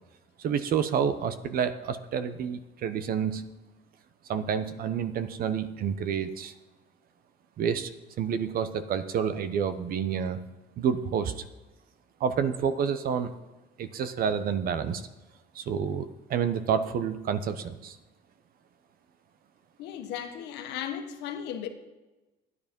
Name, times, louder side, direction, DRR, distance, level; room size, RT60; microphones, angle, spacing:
voice 1, 0.4-3.5 4.3-6.5 7.6-7.9 8.2-10.4 10.8-11.4 12.2-13.3 13.8-15.0 15.5-18.0, right 7 dB, 60° right, 0.9 m, -29 dB
voice 2, 19.8-21.7, left 9 dB, 90° left, 1.4 m, -36 dB
12.5 x 9.7 x 5.3 m
cardioid pair, 110°, 17 cm